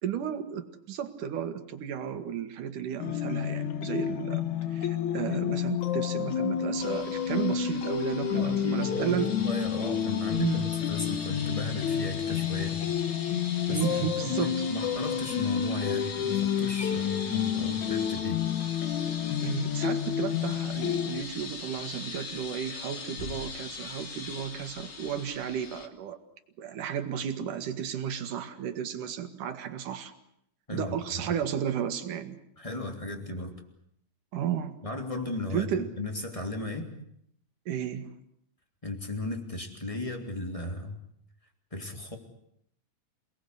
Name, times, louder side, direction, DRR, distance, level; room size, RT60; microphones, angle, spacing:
voice 1, 0.0-4.4 4.7-9.4 10.4-10.7 13.7-14.5 19.4-26.2 26.6-30.1 30.7-32.4 34.3-34.8 35.5-35.9 37.7-38.1, right 9 dB, 75° right, 8 dB, 3.3 m, -33 dB
sound 1, 3.0-21.2, left 9 dB, 70° left, 2.7 m, -30 dB
sound 2, 6.8-25.9, left 4 dB, 40° left, 2.1 m, -42 dB
voice 2, 8.3-12.8 13.7-18.4 30.7-31.3 32.6-33.5 34.8-36.9 38.8-41.0 41.7-42.2, left 2 dB, 10° left, 4 dB, 2.8 m, -36 dB
28.0 x 19.5 x 8.2 m, 0.72 s
omnidirectional pair, 3.7 m